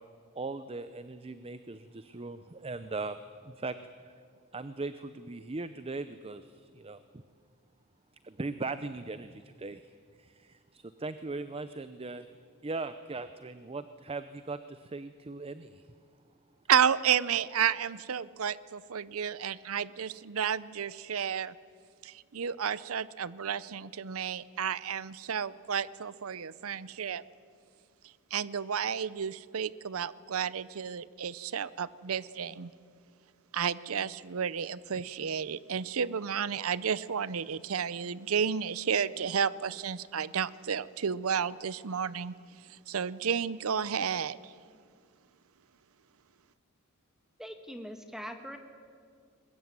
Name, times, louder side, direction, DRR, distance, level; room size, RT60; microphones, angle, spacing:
voice 1, 0.4-3.2 3.4-3.8 4.0-4.1 4.5-7.0 8.2-9.8 10.2-12.3 12.6-15.8, right 3 dB, 25° right, 12 dB, 0.6 m, -39 dB
voice 2, 16.7-21.5 22.0-27.2 28.3-32.7 33.5-42.3 42.7-44.5, right 7 dB, 70° right, 18 dB, 0.6 m, -31 dB
voice 3, 47.4-48.6, equal, ahead, 6 dB, 1.5 m, -42 dB
22.0 x 21.0 x 9.6 m, 2.1 s
head